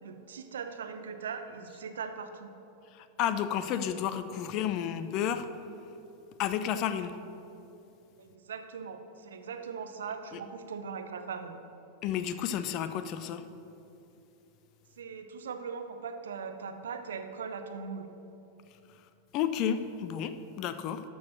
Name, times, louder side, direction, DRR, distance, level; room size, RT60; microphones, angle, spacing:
voice 1, 0.0-2.5 8.2-11.6 15.0-18.1, right 6 dB, 65° right, 8 dB, 0.7 m, -40 dB
voice 2, 3.0-5.5 6.4-7.2 12.0-13.4 19.3-21.0, left 9 dB, 40° left, 11 dB, 0.5 m, -31 dB
12.5 x 4.7 x 6.2 m, 2.8 s
figure-of-eight pair, 90°, 0 cm